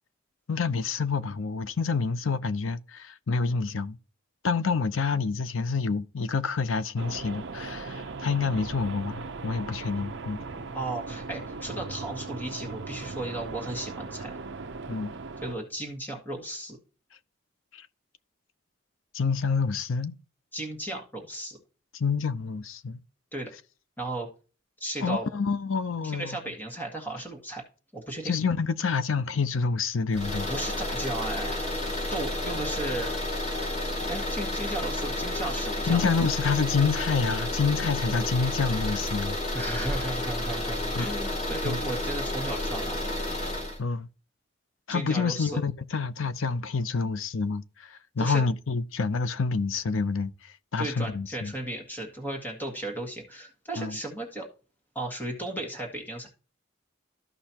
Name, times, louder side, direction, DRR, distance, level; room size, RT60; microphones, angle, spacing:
voice 1, 0.5-4.0 4.4-10.4 14.9-15.1 17.7-17.9 19.1-20.1 21.9-23.0 25.0-26.4 28.2-30.5 35.9-39.4 40.9-41.1 41.6-41.8 43.8-44.1 44.9-51.5 53.8-54.0, left 5 dB, 80° left, 0.6 m, -28 dB
sound 1, 7.0-15.6, right 3 dB, 65° right, 0.7 m, -38 dB
voice 2, 10.7-14.3 15.4-16.8 20.5-21.6 23.3-23.5 24.0-24.3 24.8-25.3 26.0-27.6 27.9-28.3 30.4-31.7 32.1-33.2 34.1-36.0 39.5-43.0 44.9-45.6 48.2-48.4 50.8-54.5 55.0-56.3, right 1 dB, 10° left, 1.8 m, -35 dB
sound 2, 30.1-43.8, left 1 dB, 35° left, 2.6 m, -31 dB
13.5 x 5.5 x 2.9 m
head